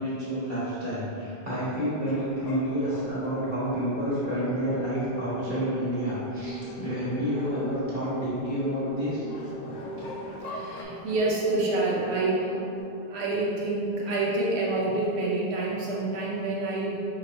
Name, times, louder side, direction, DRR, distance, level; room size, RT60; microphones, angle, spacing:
voice 1, 0.0-9.2 9.7-10.1, equal, 55° right, -12 dB, 1.6 m, -29 dB
sound 1, 2.1-10.8, left 2 dB, 55° left, 0.5 m, -44 dB
sound 2, 3.5-12.8, equal, 80° left, 1.1 m, -41 dB
voice 2, 10.4-12.6 13.1-17.0, right 2 dB, 85° right, -4 dB, 1.1 m, -27 dB
5.1 x 3.0 x 2.9 m, 2.6 s
omnidirectional pair, 1.1 m